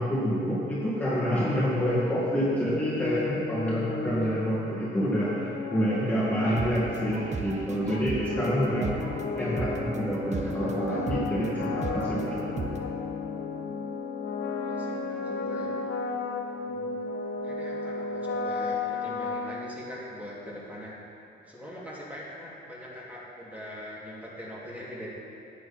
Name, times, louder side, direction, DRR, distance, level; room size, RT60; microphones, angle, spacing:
voice 1, 0.0-9.1 9.4-12.5, equal, 10° left, -9 dB, 2.2 m, -27 dB
sound 1, 2.6-20.2, left 4 dB, 65° left, 0.8 m, -34 dB
sound 2, 6.5-12.8, right 4 dB, 35° right, 0.9 m, -37 dB
voice 2, 14.6-15.8 16.6-20.9 21.4-25.1, equal, 5° right, -6 dB, 2.6 m, -42 dB
11.0 x 8.6 x 4.4 m, 2.8 s
cardioid pair, 90°, 20 cm